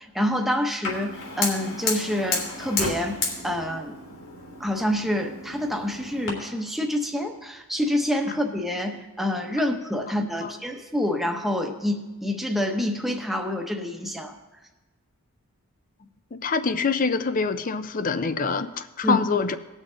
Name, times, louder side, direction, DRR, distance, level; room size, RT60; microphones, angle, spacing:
voice 1, 0.1-3.9 4.6-14.4 19.0-19.2, left 1 dB, ahead, 3 dB, 0.8 m, -27 dB
Fire, 0.8-6.3, left 3 dB, 65° left, 2.7 m, -32 dB
voice 2, 16.3-19.6, left 4 dB, 40° left, 12 dB, 0.5 m, -25 dB
18.5 x 6.4 x 3.8 m, 1.1 s
head